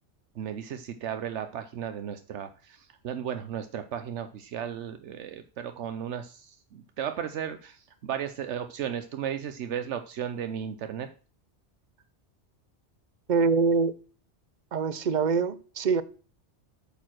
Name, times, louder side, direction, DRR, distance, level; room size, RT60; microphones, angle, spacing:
voice 1, 0.4-11.1, right 9 dB, 80° right, 1.0 m, -35 dB
voice 2, 13.3-13.9 14.7-16.0, right 5 dB, 50° right, 0.7 m, -24 dB
8.7 x 7.2 x 6.1 m
omnidirectional pair, 1.2 m